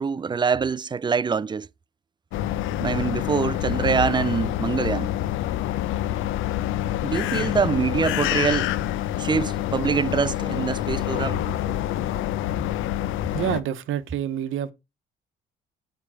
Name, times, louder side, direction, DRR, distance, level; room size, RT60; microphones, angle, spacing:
voice 1, 0.0-1.7 2.8-5.1 7.0-8.7 9.2-11.4, right 6 dB, 25° right, 0.4 m, -24 dB
sound 1, 2.3-13.6, left 13 dB, 90° left, 0.6 m, -27 dB
voice 2, 13.3-14.7, right 10 dB, 85° right, 0.9 m, -27 dB
8.5 x 3.4 x 6.2 m
cardioid pair, 90°, 20 cm